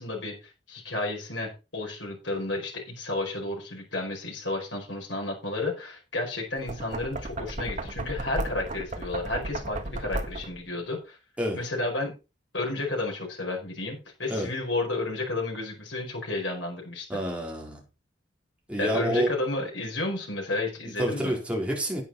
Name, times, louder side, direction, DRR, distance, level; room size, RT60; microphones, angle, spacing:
voice 1, 0.0-11.2 11.5-12.1 12.5-17.2 18.8-21.3, left 2 dB, 75° left, -1 dB, 5.0 m, -32 dB
Knock, 6.5-10.7, right 2 dB, 40° right, 1.5 m, -34 dB
voice 2, 17.1-17.8 18.7-19.3 21.0-22.0, equal, 5° right, -1 dB, 4.1 m, -28 dB
10.0 x 9.3 x 4.2 m, 0.29 s
head